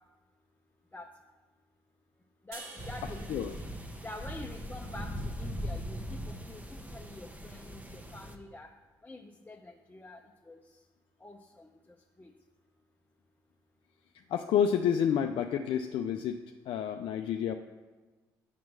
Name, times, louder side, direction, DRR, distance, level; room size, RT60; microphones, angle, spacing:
voice 1, 2.4-3.7 4.0-8.7 9.0-10.6 11.2-12.3, left 2 dB, 15° left, 1 dB, 0.8 m, -47 dB
sound 1, 2.5-5.8, right 3 dB, 70° right, 1.7 m, -52 dB
sound 2, 2.8-8.4, equal, 15° right, 1.1 m, -40 dB
voice 2, 14.3-17.5, left 8 dB, 60° left, 6 dB, 0.4 m, -29 dB
6.2 x 6.1 x 7.2 m, 1.3 s
hypercardioid pair, 45°, 10 cm